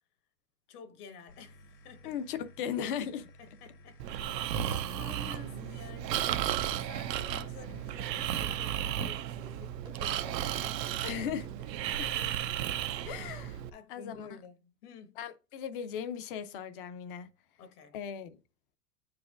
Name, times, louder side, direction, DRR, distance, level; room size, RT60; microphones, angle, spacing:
voice 1, 0.7-2.2 3.4-11.2 12.0-12.3 13.7-15.3 17.6-18.0, left 5 dB, 65° left, 1.4 m, -51 dB
sound 1, 1.3-8.8, equal, 90° left, 1.6 m, -56 dB
voice 2, 2.0-3.3 7.3-7.4 7.7-7.8 11.0-11.5 11.9-12.1 13.1-13.6 13.9-14.3 15.2-17.3 17.9-18.4, left 8 dB, 35° left, 0.5 m, -37 dB
Breathing, 4.0-13.7, right 11 dB, 85° right, 0.6 m, -34 dB
sound 2, 8.5-10.0 10.4-13.4, right 3 dB, 10° right, 0.4 m, -57 dB
9.1 x 4.8 x 2.4 m
hypercardioid pair, 140°, 49 cm